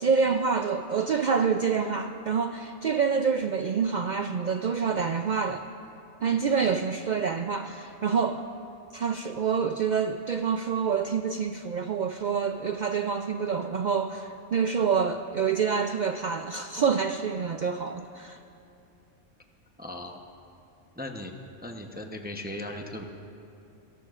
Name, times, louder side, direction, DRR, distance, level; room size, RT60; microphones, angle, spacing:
voice 1, 0.0-5.7 6.2-8.5 8.9-18.4, right 6 dB, 75° right, 6 dB, 0.4 m, -27 dB
voice 2, 6.2-6.5 19.8-20.2 21.0-21.3 21.6-23.0, left 1 dB, 10° right, 3 dB, 0.6 m, -38 dB
25.5 x 18.5 x 2.4 m, 2.7 s
omnidirectional pair, 1.3 m